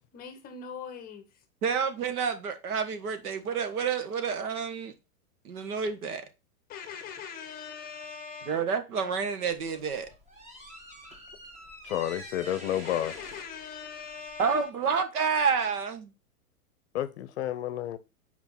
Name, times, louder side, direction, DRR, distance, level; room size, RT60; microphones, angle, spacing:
voice 1, 0.1-1.2 6.7-8.6 12.8-14.7, left 6 dB, 20° left, 0.9 m, -41 dB
voice 2, 1.6-4.9 5.4-6.2 8.4-10.1 14.4-16.1, right 6 dB, 75° right, 1.7 m, -29 dB
sound 1, 9.5-14.7, equal, 15° right, 1.3 m, -47 dB
voice 3, 11.8-13.1 16.9-18.0, left 12 dB, 45° left, 0.7 m, -30 dB
6.0 x 4.8 x 5.7 m
hypercardioid pair, 150°, 45 cm